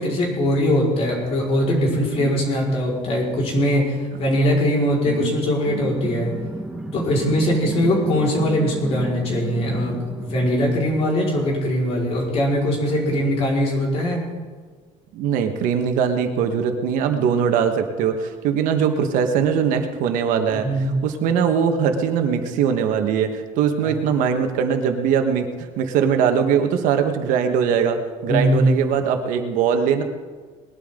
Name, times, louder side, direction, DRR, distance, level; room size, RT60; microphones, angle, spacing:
voice 1, 0.0-6.3 6.9-14.2 20.5-21.0 23.8-24.0 28.3-28.8, equal, 50° left, -3 dB, 5.0 m, -21 dB
sound 1, 5.6-10.7, right 2 dB, 5° right, 1.2 m, -32 dB
voice 2, 15.1-20.7 21.0-30.0, right 7 dB, 75° right, 6 dB, 1.5 m, -21 dB
20.0 x 12.5 x 3.9 m, 1.5 s
cardioid pair, 150°, 14 cm